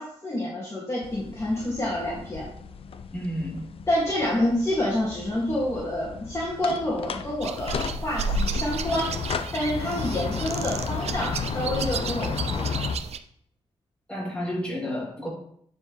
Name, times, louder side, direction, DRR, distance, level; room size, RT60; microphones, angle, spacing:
voice 1, 0.0-2.5 3.9-9.1 9.5-12.7, left 1 dB, 25° left, -7 dB, 2.0 m, -28 dB
sound 1, 1.0-13.0, left 6 dB, 60° left, 0.5 m, -33 dB
voice 2, 3.1-3.6 14.1-15.3, equal, 10° left, -6 dB, 3.0 m, -31 dB
sound 2, 7.4-13.2, right 5 dB, 75° right, 0.5 m, -33 dB
9.6 x 4.5 x 3.2 m, 0.68 s
cardioid pair, 95°, 11 cm